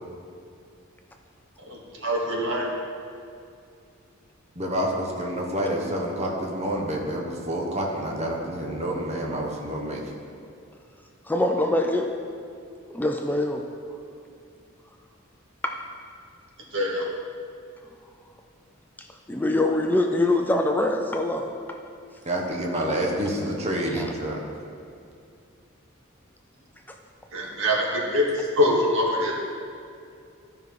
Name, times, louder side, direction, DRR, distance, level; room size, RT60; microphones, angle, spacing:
voice 1, 1.7-2.7 16.7-17.0 27.3-28.3 28.6-29.3, left 1 dB, 65° right, -3 dB, 2.1 m, -24 dB
voice 2, 4.6-10.0 22.3-24.4, right 1 dB, 30° right, -1 dB, 1.1 m, -28 dB
voice 3, 11.2-12.1 12.9-13.6 15.6-15.8 19.0-21.8 24.0-24.1, left 1 dB, 10° left, 3 dB, 0.4 m, -24 dB
13.5 x 5.4 x 4.7 m, 2.5 s
head